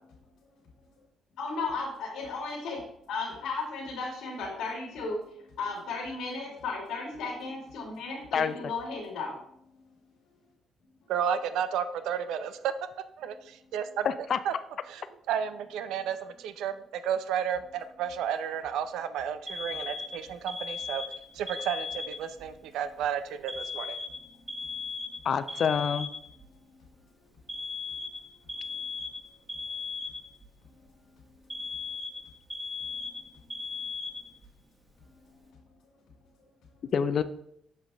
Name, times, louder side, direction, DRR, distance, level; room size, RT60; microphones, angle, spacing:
voice 1, 1.4-2.8 3.1-5.2 5.6-9.3, left 3 dB, 85° left, -2 dB, 1.9 m, -35 dB
voice 2, 11.1-12.7 13.2-14.1 14.5-14.6 14.9-21.0 21.3-24.0, right 8 dB, 85° right, 12 dB, 0.5 m, -32 dB
voice 3, 14.0-14.4 25.2-26.1 36.9-37.2, left 7 dB, 55° left, 12 dB, 0.4 m, -26 dB
Alarm, 19.5-22.4 23.5-26.4 27.5-30.5 31.5-34.5, left 4 dB, 20° right, 1.8 m, -37 dB
7.3 x 5.3 x 3.4 m, 0.72 s
cardioid pair, 90°, 0 cm